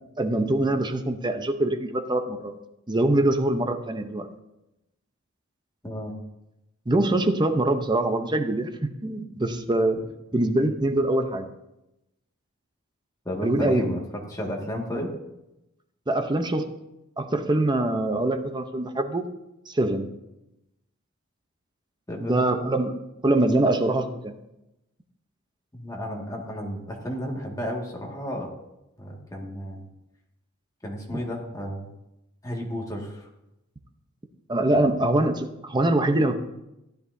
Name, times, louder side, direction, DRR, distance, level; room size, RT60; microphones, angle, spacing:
voice 1, 0.2-2.5 2.9-4.3 6.9-10.0 10.3-11.5 13.4-13.9 16.1-16.7 17.2-19.3 19.7-20.1 22.2-23.0 23.2-24.4 31.1-31.2 34.5-36.4, right 1 dB, 20° right, 7 dB, 0.7 m, -24 dB
voice 2, 5.8-6.2 13.3-14.0 14.3-15.1 22.1-22.5 25.7-28.5 29.0-29.8 30.8-31.9 32.4-33.3, equal, 15° left, -1 dB, 1.9 m, -32 dB
15.5 x 10.5 x 2.7 m, 0.92 s
head